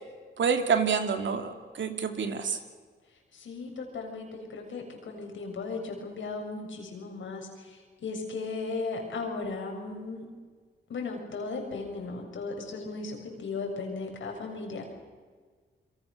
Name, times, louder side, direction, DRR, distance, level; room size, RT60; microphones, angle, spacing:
voice 1, 0.4-2.6, right 6 dB, 75° right, 6 dB, 2.9 m, -27 dB
voice 2, 3.3-10.2 10.9-14.9, left 3 dB, 85° left, 2 dB, 6.8 m, -36 dB
28.0 x 24.0 x 6.8 m, 1.5 s
cardioid pair, 90°, 19 cm